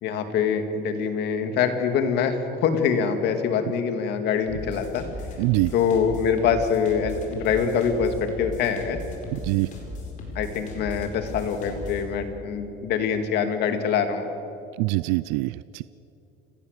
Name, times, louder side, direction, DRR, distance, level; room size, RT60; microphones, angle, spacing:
voice 1, 0.0-5.0 5.7-9.0 10.4-14.3, left 6 dB, 55° left, 7 dB, 2.3 m, -24 dB
sound 1, 4.5-12.1, left 2 dB, 40° left, 4.8 m, -37 dB
voice 2, 5.4-5.7 9.3-9.7 14.8-15.8, right 23 dB, 85° right, 18 dB, 0.4 m, -24 dB
30.0 x 17.5 x 6.7 m, 2.7 s
cardioid pair, 150°, 20 cm